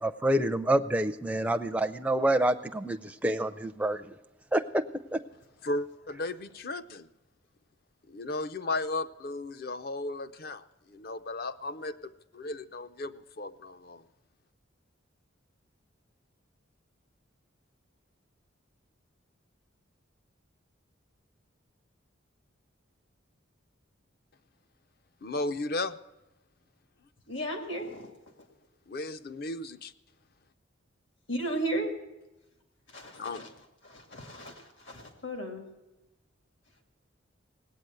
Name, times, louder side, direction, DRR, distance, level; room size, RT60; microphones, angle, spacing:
voice 1, 0.0-4.2 4.5-4.8 5.1-5.2, right 1 dB, 5° right, 0.4 m, -27 dB
voice 2, 5.6-7.1 8.1-14.0 25.2-26.0 28.9-29.9 33.1-33.4, left 2 dB, 50° left, 0.6 m, -35 dB
voice 3, 27.3-28.1 31.3-32.0 32.9-33.5 33.8-35.7, right 1 dB, 70° left, 2.1 m, -35 dB
18.0 x 8.7 x 7.8 m
head